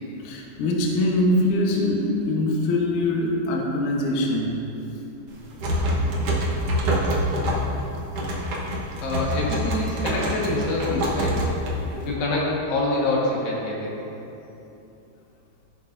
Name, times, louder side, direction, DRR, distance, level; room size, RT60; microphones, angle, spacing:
voice 1, 0.2-4.5, left 1 dB, 65° left, -2 dB, 2.1 m, -23 dB
sound 1, 5.3-12.1, equal, 90° right, 1.3 m, -26 dB
voice 2, 9.0-11.4 12.0-13.9, left 2 dB, 80° left, -4 dB, 3.7 m, -25 dB
15.5 x 7.9 x 2.6 m, 2.9 s
omnidirectional pair, 4.7 m